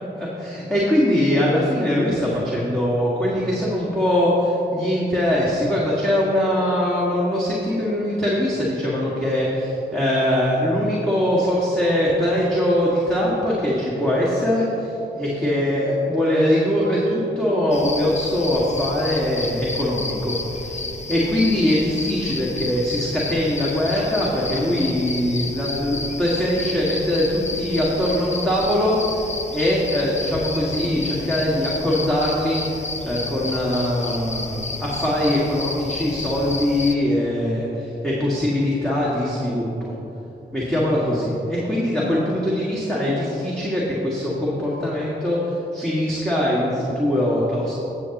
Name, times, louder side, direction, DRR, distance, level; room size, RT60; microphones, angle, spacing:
voice 1, 0.1-14.9 15.2-20.8 21.1-29.2 29.5-32.6 33.0-39.9 40.5-47.7, left 1 dB, ahead, -8 dB, 1.9 m, -22 dB
sound 1, 17.7-37.0, left 3 dB, 35° left, 0.8 m, -31 dB
15.5 x 7.1 x 3.0 m, 3.0 s
cardioid pair, 60°, 20 cm